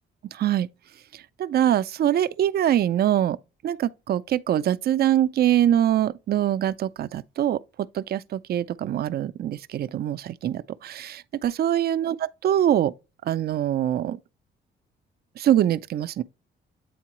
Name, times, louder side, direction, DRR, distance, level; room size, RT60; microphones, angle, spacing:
voice 1, 0.3-0.7 1.1-3.4 3.6-7.6 7.9-12.9 13.2-14.2 15.4-16.2, right 11 dB, 50° right, 0.4 m, -23 dB
8.5 x 3.7 x 3.0 m
cardioid pair, 90°, 20 cm